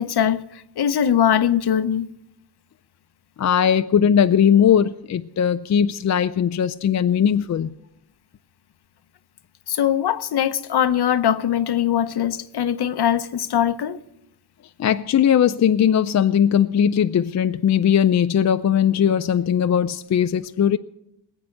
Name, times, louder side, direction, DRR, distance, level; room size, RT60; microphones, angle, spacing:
voice 1, 0.0-2.1 9.7-14.0, left 9 dB, 60° left, 0.8 m, -21 dB
voice 2, 3.4-7.7 14.8-20.8, left 8 dB, 40° left, 0.4 m, -19 dB
20.0 x 8.4 x 6.5 m
cardioid pair, 105°, 44 cm